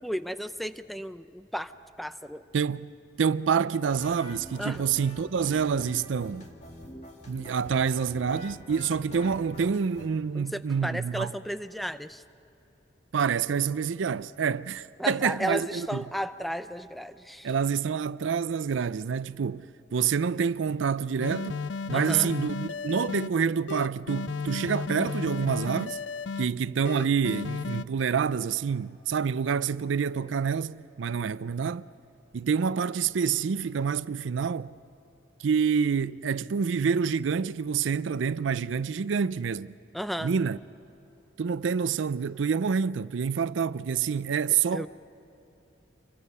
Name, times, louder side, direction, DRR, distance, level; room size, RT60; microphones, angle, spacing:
voice 1, 0.0-1.7 2.0-2.4 4.6-4.8 10.3-12.2 15.0-17.5 21.9-22.3 39.9-40.3 44.7-44.9, equal, ahead, 0.5 m, -34 dB
voice 2, 2.5-2.9 3.2-6.5 7.3-11.3 13.1-16.1 17.4-21.6 21.9-26.0 26.4-31.9 32.3-34.7 35.4-39.8 40.2-40.6 41.4-44.9, right 6 dB, 90° right, 0.4 m, -27 dB
sound 1, 3.9-10.1, equal, 35° left, 2.2 m, -45 dB
sound 2, 21.2-23.3 23.7-26.5 26.8-27.8, left 4 dB, 75° left, 0.4 m, -34 dB
28.5 x 23.5 x 5.5 m
head